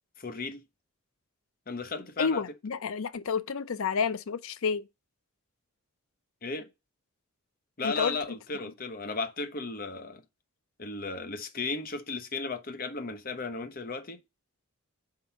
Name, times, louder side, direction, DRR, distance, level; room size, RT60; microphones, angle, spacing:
voice 1, 0.2-0.6 1.7-2.4 6.4-6.7 7.8-10.2 10.8-14.2, left 4 dB, 40° left, 0.9 m, -35 dB
voice 2, 2.2-4.9 7.8-8.2, left 6 dB, 65° left, 0.5 m, -30 dB
5.3 x 3.9 x 5.7 m
head